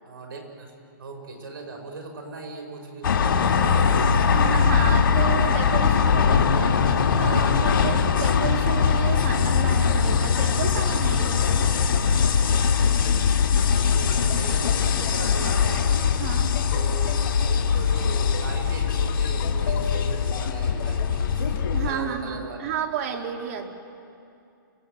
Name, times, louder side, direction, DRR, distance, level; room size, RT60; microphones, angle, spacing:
voice 1, 0.0-0.7 1.0-4.0 13.6-15.9 16.7-17.1 17.4-21.6 21.8-22.6, right 3 dB, 80° right, 2 dB, 5.1 m, -38 dB
sound 1, 3.0-21.9, left 6 dB, 75° left, 2.0 m, -21 dB
voice 2, 4.3-6.8 7.1-11.7 16.2-16.5 21.7-23.7, right 8 dB, 40° right, 4 dB, 2.2 m, -32 dB
sound 2, 8.6-22.2, left 8 dB, 35° left, 1.2 m, -40 dB
29.0 x 17.5 x 7.7 m, 2.5 s
hypercardioid pair, 160°, 12 cm